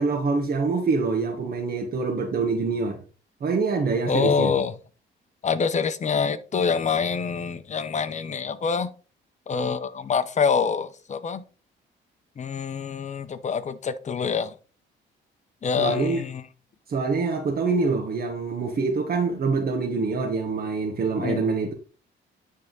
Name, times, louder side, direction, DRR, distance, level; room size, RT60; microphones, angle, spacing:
voice 1, 0.0-3.0 3.4-4.6 15.8-16.2 16.9-21.7, right 4 dB, 50° right, 1.3 m, -25 dB
voice 2, 4.1-4.7 5.4-8.9 9.5-11.4 12.4-14.5 15.6-16.4 21.2-21.5, left 6 dB, 35° left, 0.8 m, -26 dB
9.4 x 3.6 x 3.9 m
cardioid pair, 90°, 20 cm